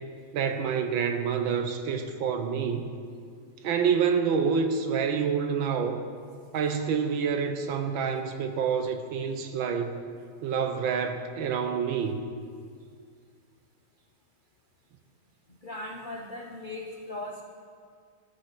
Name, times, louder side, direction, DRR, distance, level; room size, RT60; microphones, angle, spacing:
voice 1, 0.3-2.9 3.6-6.0 6.5-9.9 10.4-12.2, right 6 dB, 70° right, 7 dB, 1.6 m, -27 dB
voice 2, 15.5-17.4, left 2 dB, 70° left, 2 dB, 0.4 m, -38 dB
13.0 x 10.5 x 6.0 m, 2.1 s
omnidirectional pair, 2.3 m